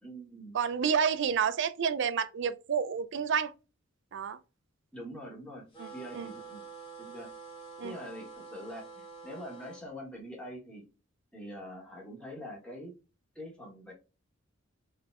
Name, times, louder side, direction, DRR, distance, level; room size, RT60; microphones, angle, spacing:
voice 1, 0.0-0.5 4.9-5.7 5.9-6.6 7.0-7.3 7.8-10.8 11.3-12.9 13.3-13.9, equal, 5° left, 1.4 m, -44 dB
voice 2, 0.5-3.5 4.1-4.4 5.8-5.9 6.1-6.3 7.8-7.9, right 7 dB, 60° right, 0.4 m, -29 dB
sound 1, 5.7-9.8, right 4 dB, 25° left, 1.5 m, -47 dB
3.3 x 3.2 x 2.4 m
head